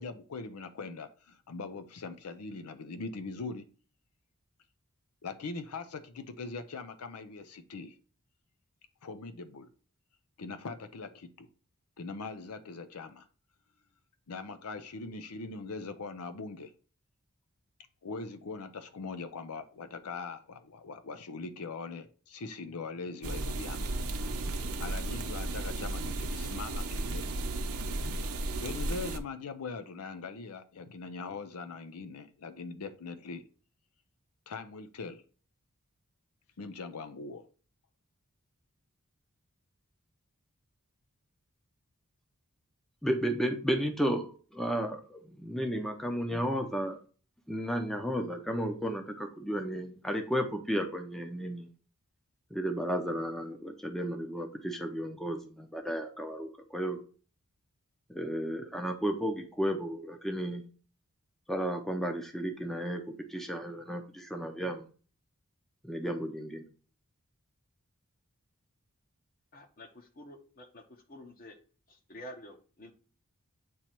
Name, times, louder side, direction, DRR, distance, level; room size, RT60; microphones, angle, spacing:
voice 1, 0.0-3.7 5.2-8.0 9.0-9.7 10.4-11.5 12.0-13.3 14.3-16.7 18.0-24.0 24.8-27.3 28.0-28.2 28.6-33.4 34.5-35.2 36.6-37.5, left 4 dB, 75° left, 9 dB, 0.6 m, -41 dB
sound 1, 23.2-29.2, right 2 dB, 70° right, 0.8 m, -34 dB
voice 2, 43.0-47.0 47.5-51.7 52.5-57.0 58.1-60.6 61.5-63.0 63.3-64.8 65.8-66.6, equal, ahead, 4 dB, 0.7 m, -33 dB
voice 3, 69.5-70.8 71.1-71.6 71.9-72.9, equal, 40° left, 5 dB, 1.1 m, -49 dB
8.5 x 3.0 x 4.4 m, 0.39 s
head